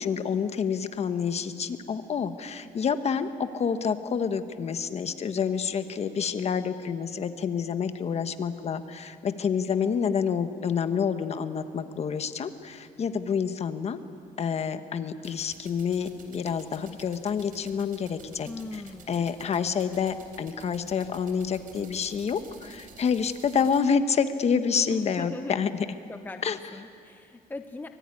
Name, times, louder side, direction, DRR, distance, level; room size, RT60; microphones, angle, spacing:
voice 1, 0.0-14.0 14.4-18.8 19.1-25.9 26.4-26.6, left 6 dB, 40° left, 9 dB, 1.2 m, -28 dB
sound 1, 15.2-23.8, right 6 dB, 60° right, 3.6 m, -52 dB
voice 2, 18.5-19.4 24.9-25.6 26.1-27.9, left 3 dB, 10° left, 7 dB, 0.7 m, -40 dB
24.5 x 21.0 x 9.9 m, 2.5 s
cardioid pair, 145°, 16 cm